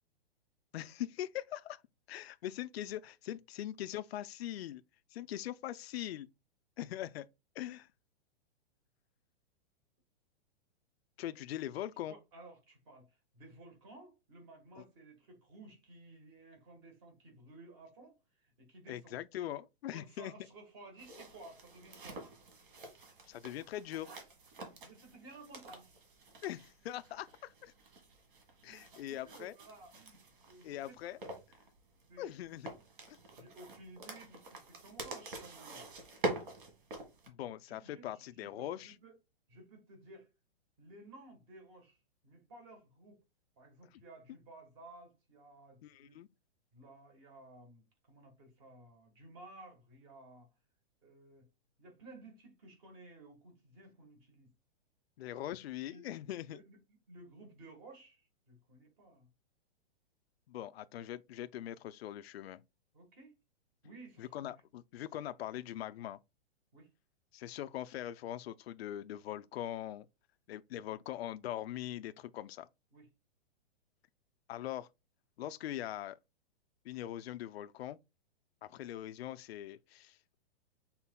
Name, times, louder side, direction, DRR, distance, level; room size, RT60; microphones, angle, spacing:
voice 1, 0.7-1.8 2.1-4.8 5.1-6.3 6.8-7.3 7.6-7.9 11.2-12.1 18.9-20.3 23.3-24.1 26.4-27.7 28.6-29.5 30.6-31.2 32.2-32.7 33.1-33.2 37.3-38.9 45.8-46.3 55.2-56.6 60.5-62.6 64.2-66.2 67.3-70.1 70.5-72.7 74.5-74.9 75.4-76.2 76.8-78.0 78.6-80.3, left 12 dB, 70° left, 0.5 m, -42 dB
voice 2, 12.1-19.2 19.9-22.3 24.8-25.9 28.6-31.3 32.1-32.3 33.3-35.9 37.7-39.1 39.5-40.3 40.8-43.2 43.6-46.2 46.7-50.5 51.0-51.5 51.8-54.5 55.9-56.0 56.4-56.8 57.1-59.3 62.9-63.4 63.8-64.5 66.7-66.9 72.9-73.1 78.7-78.8, right 2 dB, 25° right, 1.4 m, -56 dB
sound 1, 21.0-37.3, right 2 dB, 50° right, 1.7 m, -46 dB
5.7 x 3.9 x 2.2 m
hypercardioid pair, 175°, 32 cm